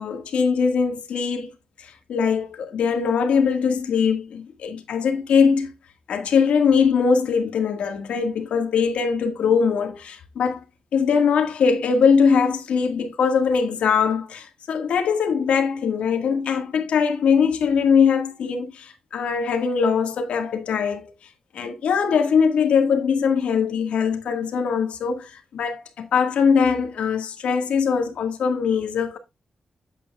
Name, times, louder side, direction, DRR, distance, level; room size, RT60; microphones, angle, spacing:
voice 1, 0.0-1.5 1.8-5.7 6.1-10.6 10.9-21.1 21.5-29.2, left 6 dB, 85° left, 1.8 m, -21 dB
8.7 x 8.3 x 2.4 m
wide cardioid pair, 115°, 2 cm